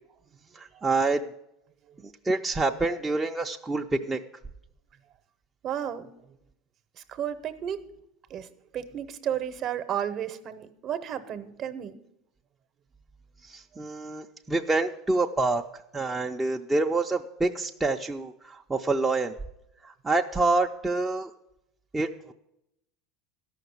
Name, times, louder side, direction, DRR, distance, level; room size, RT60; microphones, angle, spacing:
voice 1, 0.5-1.3 2.0-4.2 13.4-15.6 15.9-19.3 19.8-21.3 21.9-22.3, right 3 dB, 10° right, 1 dB, 0.4 m, -27 dB
voice 2, 5.6-6.1 7.0-7.8 8.3-8.5 8.7-12.0, right 9 dB, 40° right, 12 dB, 0.8 m, -33 dB
13.0 x 5.9 x 8.1 m, 0.83 s
supercardioid pair, 130°, 0 cm